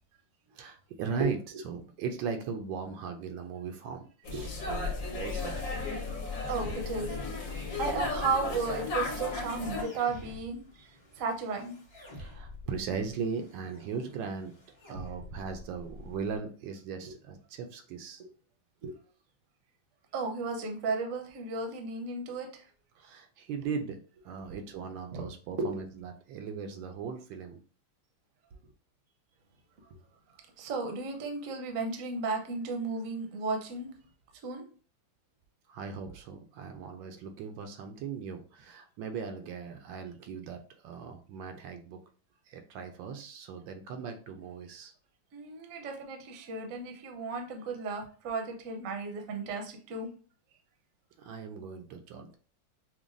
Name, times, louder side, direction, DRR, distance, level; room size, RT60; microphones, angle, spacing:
voice 1, 0.5-1.4 1.6-5.6 10.8-10.9 12.1-14.5 14.9-18.2 22.9-27.6 35.7-42.0 42.5-44.9 51.2-52.4, right 6 dB, 80° right, 5 dB, 1.3 m, -38 dB
sound 1, 4.2-9.8, left 3 dB, 70° left, 1.8 m, -35 dB
sound 2, 4.4-16.4, left 1 dB, 25° left, 0.6 m, -50 dB
voice 2, 6.5-7.2 7.8-10.6 11.2-11.8 17.0-17.1 18.8-19.0 20.1-22.6 25.1-25.3 25.6-25.8 30.6-33.9 34.4-34.6 45.3-50.1, right 4 dB, 55° right, 3 dB, 1.0 m, -34 dB
5.9 x 2.2 x 2.5 m, 0.39 s
omnidirectional pair, 2.1 m